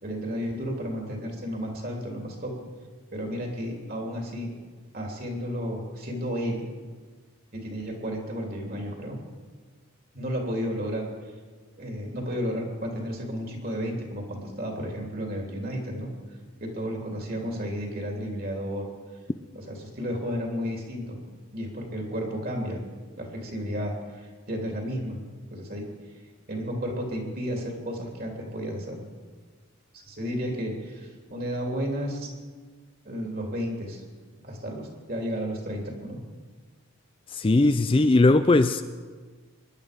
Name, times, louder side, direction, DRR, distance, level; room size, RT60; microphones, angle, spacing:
voice 1, 0.0-2.5 3.1-4.5 4.9-6.6 7.5-9.2 10.1-11.1 11.8-16.1 16.6-18.9 19.5-21.2 21.5-22.8 23.2-25.2 25.5-25.9 26.5-29.0 30.0-32.3 33.0-34.0 34.4-36.2, equal, 45° right, 3.1 m, -32 dB
voice 2, 37.3-38.8, left 2 dB, 25° left, 0.4 m, -19 dB
24.0 x 11.0 x 5.2 m
head